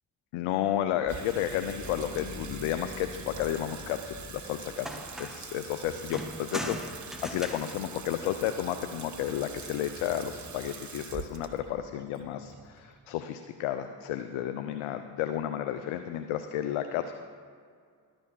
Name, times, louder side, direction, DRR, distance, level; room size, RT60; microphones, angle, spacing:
voice 1, 0.3-4.9 5.2-17.1, left 11 dB, 75° left, 8 dB, 0.7 m, -32 dB
Water tap faucet / Sink (filling or washing), 1.0-13.4, right 6 dB, 35° right, 1.0 m, -45 dB
sound 1, 1.2-12.6, left 1 dB, 30° left, 2.0 m, -49 dB
sound 2, 4.8-5.6 6.1-8.8 10.1-10.5, equal, ahead, 1.2 m, -40 dB
12.0 x 6.2 x 6.2 m, 2.1 s
hypercardioid pair, 40°, 49 cm